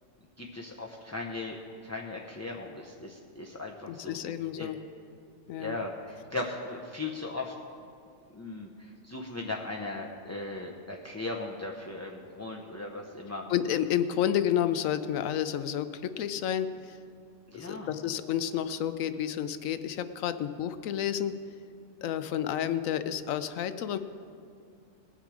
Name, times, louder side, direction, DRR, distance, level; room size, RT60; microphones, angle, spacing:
voice 1, 0.4-4.7 5.6-7.6 8.3-13.4 17.5-17.9, left 2 dB, 15° left, -2 dB, 0.5 m, -38 dB
voice 2, 3.9-4.8 5.5-5.8 13.5-17.0 17.5-21.4 22.0-24.0, left 10 dB, 80° left, 11 dB, 1.0 m, -30 dB
19.5 x 7.4 x 4.9 m, 2.4 s
omnidirectional pair, 1.4 m